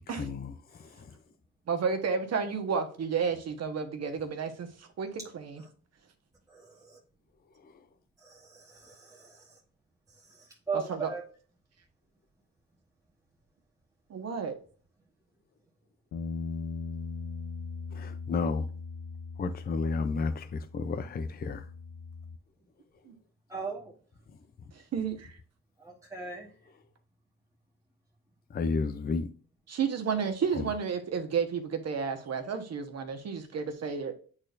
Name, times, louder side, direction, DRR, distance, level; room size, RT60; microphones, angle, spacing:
voice 1, 0.1-1.1 7.6-7.7 17.9-18.7 19.4-21.7 28.5-29.3 30.5-30.7, left 4 dB, 30° left, 0.6 m, -32 dB
voice 2, 1.7-5.6 10.7-11.1 14.1-14.5 23.0-23.1 24.9-25.4 29.7-34.1, right 6 dB, 55° right, 1.2 m, -32 dB
voice 3, 6.5-7.0 8.2-9.4 10.7-11.2 23.5-23.9 25.8-26.5, right 5 dB, 10° right, 1.2 m, -38 dB
sound 1, 16.1-22.4, left 4 dB, 75° left, 0.7 m, -40 dB
8.6 x 4.2 x 2.6 m
cardioid pair, 90°, 30 cm